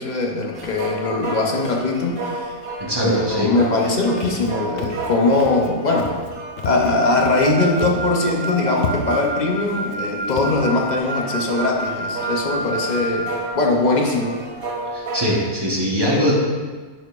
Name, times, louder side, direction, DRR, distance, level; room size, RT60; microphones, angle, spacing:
voice 1, 0.0-2.5 3.0-6.1 6.6-14.4, left 2 dB, 40° left, 0 dB, 0.8 m, -21 dB
sound 1, 0.5-15.5, right 2 dB, 50° right, 0.9 m, -31 dB
voice 2, 2.8-3.5 14.9-16.3, equal, 20° right, -4 dB, 1.1 m, -21 dB
Walk footsteps, 4.2-4.5 4.8-5.1 5.4-5.7 6.0-6.3 6.6-7.5 7.8-8.1 8.4-8.5 8.8-9.3 9.8-10.0 10.3-10.6, left 6 dB, 70° left, 0.9 m, -31 dB
Wind instrument woodwind instrument, 7.0-13.4, equal, 70° right, 1.2 m, -29 dB
10.0 x 5.1 x 2.5 m, 1.4 s
omnidirectional pair, 1.2 m